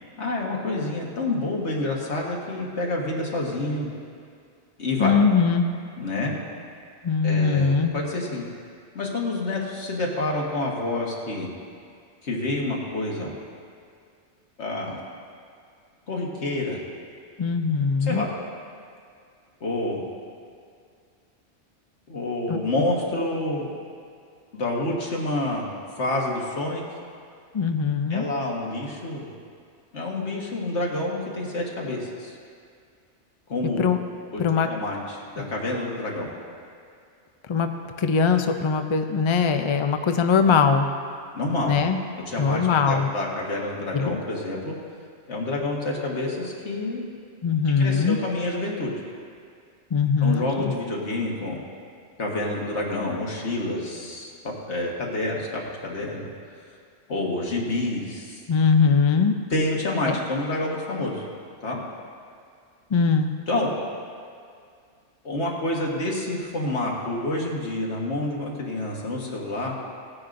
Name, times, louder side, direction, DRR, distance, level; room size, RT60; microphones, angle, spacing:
voice 1, 0.2-3.9 4.8-5.2 6.0-6.3 7.2-8.5 9.0-11.5 12.2-13.3 14.6-15.0 16.1-16.8 18.0-18.3 19.6-20.1 22.1-23.7 24.5-26.8 28.1-29.3 29.9-32.4 33.5-33.8 34.3-36.3 41.3-41.7 42.2-44.8 45.3-47.1 47.8-48.9 50.2-51.6 52.2-56.3 57.1-58.4 59.5-61.3 61.6-61.8 63.5-63.7 65.2-69.7, left 2 dB, 70° left, -2 dB, 1.7 m, -28 dB
voice 2, 5.0-5.7 7.0-7.9 17.4-18.2 22.5-22.6 27.5-28.3 33.8-34.0 34.4-34.7 37.5-37.7 38.0-40.9 41.7-42.0 42.4-43.1 43.9-44.2 47.4-48.2 49.9-50.7 58.5-59.3 60.1-60.2 62.9-63.3, left 5 dB, 55° left, 6 dB, 0.3 m, -21 dB
16.5 x 9.7 x 2.6 m, 2.2 s
omnidirectional pair, 1.2 m